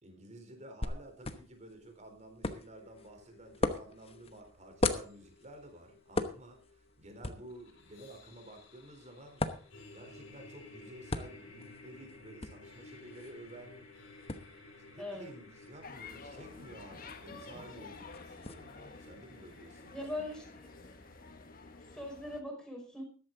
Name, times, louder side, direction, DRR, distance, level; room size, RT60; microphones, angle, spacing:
voice 1, 0.0-14.3 14.9-20.2, right 1 dB, 35° right, 5 dB, 3.8 m, -52 dB
sound 1, 0.8-18.5, left 2 dB, 30° left, 1.0 m, -41 dB
sound 2, 2.7-22.0, left 3 dB, 75° left, 3.8 m, -56 dB
voice 2, 15.0-15.3 19.9-20.7 21.9-23.0, left 1 dB, 5° left, 0 dB, 5.1 m, -41 dB
sound 3, 15.8-22.4, left 3 dB, 45° left, 1.3 m, -50 dB
14.0 x 12.0 x 3.9 m, 0.38 s
head